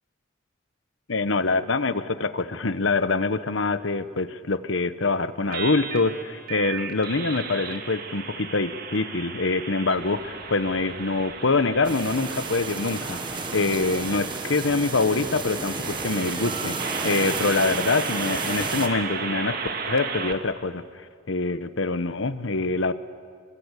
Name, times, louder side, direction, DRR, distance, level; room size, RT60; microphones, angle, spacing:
voice 1, 1.1-19.6 19.9-20.8 21.3-22.9, left 3 dB, 80° left, 12 dB, 1.1 m, -25 dB
sound 1, 5.5-20.3, right 5 dB, 50° right, 2.0 m, -34 dB
sound 2, 11.8-18.9, right 3 dB, 25° right, 1.5 m, -32 dB
27.0 x 24.0 x 8.4 m, 2.1 s
head